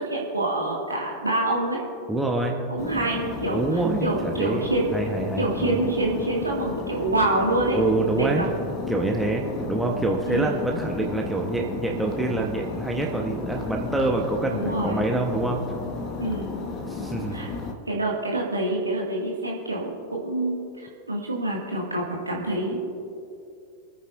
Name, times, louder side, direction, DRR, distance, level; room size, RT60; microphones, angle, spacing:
voice 1, 0.0-1.8 2.7-4.9 5.4-7.8 8.2-8.5 10.3-10.6 14.5-15.0 16.2-16.5 17.3-17.5 17.8-22.8, right 2 dB, 80° right, -2 dB, 2.1 m, -26 dB
voice 2, 2.1-2.5 3.5-4.7 4.9-5.8 7.7-8.5 8.9-15.6 16.9-17.4, right 2 dB, 5° right, 0 dB, 1.2 m, -26 dB
sound 1, 2.8-17.7, left 4 dB, 35° left, 1.4 m, -34 dB
27.5 x 9.6 x 2.6 m, 2.4 s
figure-of-eight pair, 90°, 0 cm